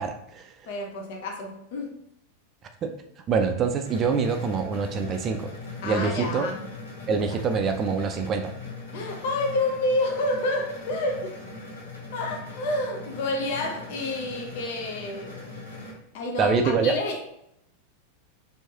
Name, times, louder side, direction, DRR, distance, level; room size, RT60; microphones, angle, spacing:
voice 1, 0.0-0.5 2.8-2.9 3.3-5.5 5.8-6.5 7.1-8.5 16.4-17.0, right 5 dB, 30° right, 6 dB, 0.4 m, -25 dB
voice 2, 0.7-2.0 5.8-6.6 8.9-11.5 12.1-15.4 16.1-17.2, left 2 dB, 50° left, 2 dB, 0.6 m, -29 dB
sound 1, 3.9-15.9, left 3 dB, 70° left, 1.4 m, -40 dB
4.5 x 2.6 x 2.7 m, 0.79 s
figure-of-eight pair, 90°, 0 cm